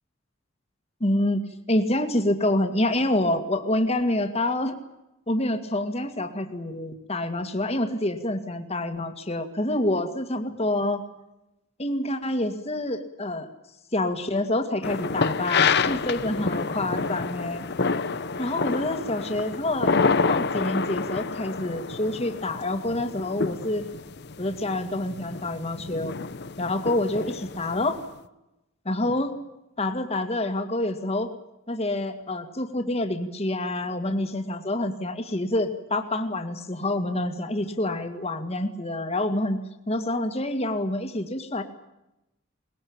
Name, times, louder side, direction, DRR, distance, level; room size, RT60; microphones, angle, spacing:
voice 1, 1.0-1.4 1.7-4.8 5.3-11.0 11.8-13.5 13.9-17.7 18.4-19.9 20.2-23.8 24.4-26.1 26.6-28.0 28.9-29.3 29.8-31.3 31.7-39.6 39.9-41.6, left 1 dB, 30° left, 6 dB, 2.0 m, -27 dB
sound 1, 14.8-28.0, left 4 dB, 55° left, 0.9 m, -28 dB
22.0 x 20.0 x 8.8 m, 0.92 s
head